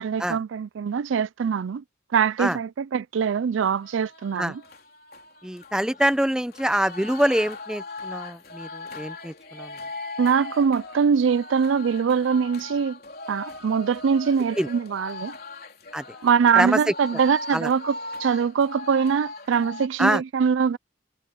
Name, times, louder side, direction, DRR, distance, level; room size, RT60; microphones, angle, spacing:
voice 1, 0.0-1.8 2.1-4.6 10.2-13.0 13.3-15.3 16.2-17.9 18.2-20.8, right 6 dB, 85° right, 0.4 m, -23 dB
sound 1, 3.8-19.9, left 2 dB, 50° left, 3.9 m, -39 dB
voice 2, 5.4-9.7 14.6-14.7 15.9-16.0 16.6-16.9 17.5-17.7 20.0-20.2, right 1 dB, 5° right, 0.6 m, -25 dB
head